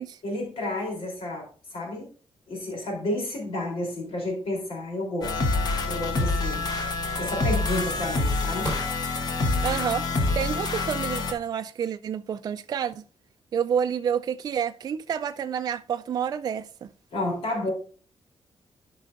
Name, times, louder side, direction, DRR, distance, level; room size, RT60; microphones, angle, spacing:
voice 1, 0.2-2.1 2.5-5.4 5.9-6.6 7.2-8.7 17.1-17.7, left 1 dB, 80° left, 3.3 m, -31 dB
sound 1, 5.2-11.3, left 3 dB, 45° left, 1.0 m, -26 dB
sound 2, 7.1-9.9, equal, 15° left, 4.4 m, -39 dB
voice 2, 9.6-13.0 13.5-16.9, right 8 dB, 45° right, 0.3 m, -29 dB
13.0 x 5.4 x 2.5 m
wide cardioid pair, 170°, 10 cm